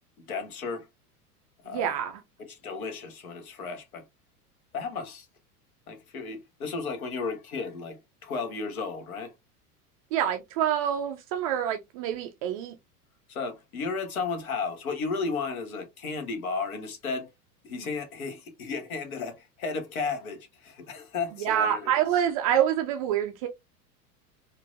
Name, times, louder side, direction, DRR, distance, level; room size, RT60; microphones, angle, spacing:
voice 1, 0.2-0.9 1.6-2.0 2.5-4.1 4.7-5.3 5.9-9.3 13.3-17.3 17.6-21.9, left 4 dB, 60° left, 1.3 m, -34 dB
voice 2, 1.7-2.2 10.1-12.8 17.7-17.9 21.4-23.5, right 10 dB, 25° right, 0.4 m, -27 dB
4.4 x 2.6 x 2.5 m
figure-of-eight pair, 85°, 47 cm